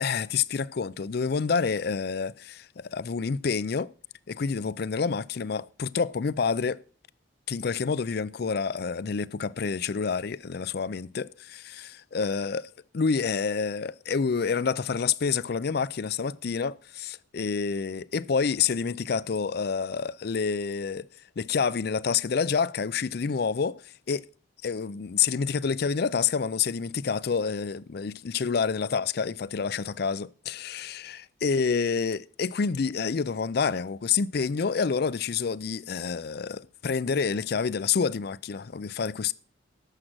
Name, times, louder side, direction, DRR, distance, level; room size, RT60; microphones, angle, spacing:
voice 1, 0.0-3.9 4.3-6.8 7.5-21.1 21.4-24.2 24.6-39.3, left 5 dB, 55° left, 0.4 m, -28 dB
11.5 x 7.5 x 6.1 m
head